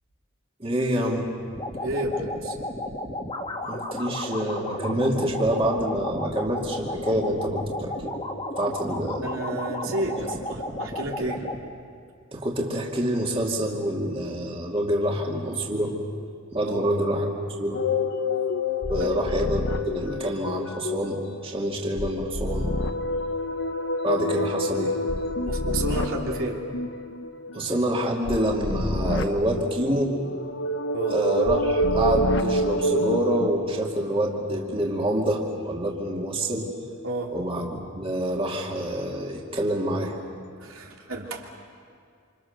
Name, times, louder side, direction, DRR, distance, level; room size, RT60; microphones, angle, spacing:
voice 1, 0.6-1.3 3.6-8.1 8.6-9.3 12.3-16.0 16.5-17.3 17.6-17.8 18.9-22.7 24.0-25.0 27.5-30.2 31.1-36.7 37.3-40.1, right 1 dB, 25° right, -1 dB, 2.5 m, -27 dB
sound 1, 1.5-11.6, left 1 dB, 30° left, 2.2 m, -33 dB
voice 2, 1.8-2.6 9.2-11.5 16.6-16.9 19.0-19.1 25.4-26.6 30.9-31.2 37.0-37.3 40.6-41.5, right 1 dB, 80° right, 0 dB, 3.0 m, -31 dB
sound 2, 17.7-21.3 21.6-33.5, left 1 dB, 60° left, 1.1 m, -27 dB
27.5 x 27.5 x 6.7 m, 2.3 s
head